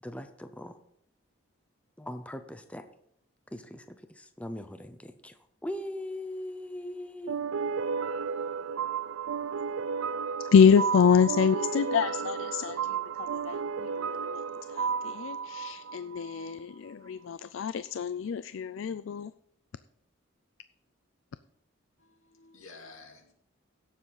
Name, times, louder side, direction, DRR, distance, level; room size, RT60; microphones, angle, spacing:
voice 1, 0.0-0.8 2.0-2.8 3.5-7.5, left 1 dB, 5° left, 9 dB, 0.6 m, -40 dB
sound 1, 7.3-16.5, right 6 dB, 75° right, 0.4 m, -33 dB
voice 2, 10.5-12.8 13.3-13.9 14.2-14.4 14.7-19.3, left 6 dB, 65° left, 15 dB, 0.4 m, -25 dB
voice 3, 22.0-23.3, left 3 dB, 85° left, 3 dB, 2.3 m, -51 dB
16.5 x 7.4 x 3.9 m, 0.71 s
head